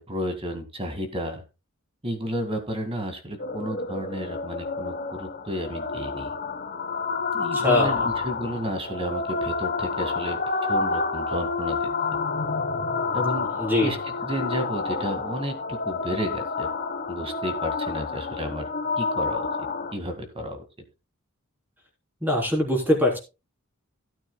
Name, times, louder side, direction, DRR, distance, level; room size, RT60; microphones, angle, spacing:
voice 1, 0.0-1.4 2.0-6.3 7.3-10.4 10.7-11.9 13.1-13.5 13.8-14.0 14.3-16.7 17.1-18.7 19.0-19.5 19.9-20.6, equal, 25° right, 6 dB, 2.0 m, -32 dB
sound 1, 3.4-19.9, left 4 dB, 45° left, 1.1 m, -29 dB
voice 2, 7.5-8.1 13.5-13.9 22.2-23.2, left 1 dB, 10° right, 0 dB, 3.6 m, -22 dB
16.5 x 9.0 x 2.3 m, 0.28 s
head